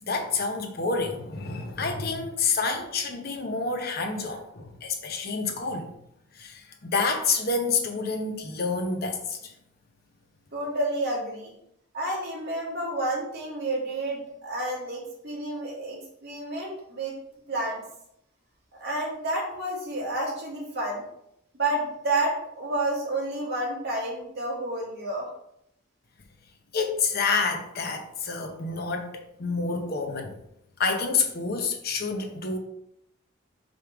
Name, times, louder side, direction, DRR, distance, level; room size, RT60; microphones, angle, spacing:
voice 1, 0.0-5.9 6.3-9.5 26.7-30.3 30.8-32.6, left 4 dB, 50° left, 4 dB, 0.8 m, -28 dB
voice 2, 10.5-11.5 11.9-17.1 17.5-17.8 18.8-21.0 21.5-25.3, right 1 dB, 55° right, -4 dB, 2.5 m, -30 dB
5.2 x 5.2 x 3.5 m, 0.76 s
head